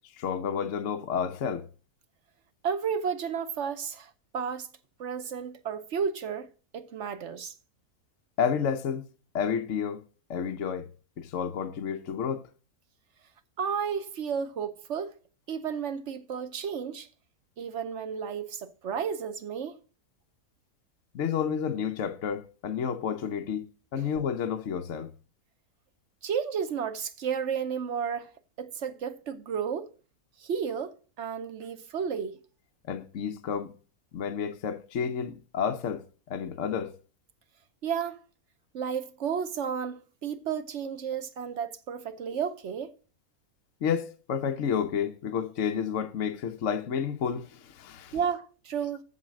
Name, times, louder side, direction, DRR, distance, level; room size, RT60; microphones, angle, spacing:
voice 1, 0.1-1.7 8.4-9.1 9.3-10.0 10.3-10.9 11.2-12.5 21.1-23.7 23.9-25.1 32.9-33.7 34.1-36.9 43.8-48.2, left 7 dB, 60° left, 1.1 m, -30 dB
voice 2, 2.6-4.7 5.0-6.5 6.7-7.5 13.6-15.1 15.5-17.1 17.6-19.8 24.0-24.1 26.2-28.3 28.6-29.9 30.4-32.4 37.8-38.2 38.7-42.9 48.1-49.0, right 7 dB, 60° right, 0.9 m, -32 dB
8.1 x 7.0 x 6.3 m
omnidirectional pair, 1.6 m